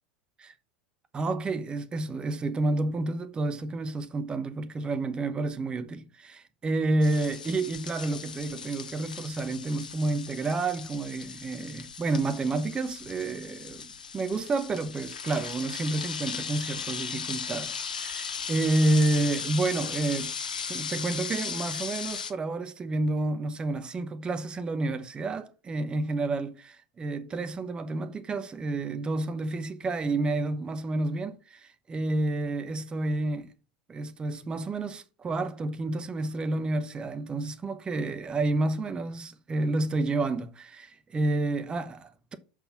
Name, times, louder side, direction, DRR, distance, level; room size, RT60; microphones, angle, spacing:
voice 1, 1.1-20.3 20.7-33.5 33.9-42.4, right 2 dB, 20° right, 1.0 m, -30 dB
sound 1, 7.0-22.3, left 6 dB, 75° left, 0.9 m, -37 dB
6.3 x 5.6 x 5.8 m
figure-of-eight pair, 80°, 4 cm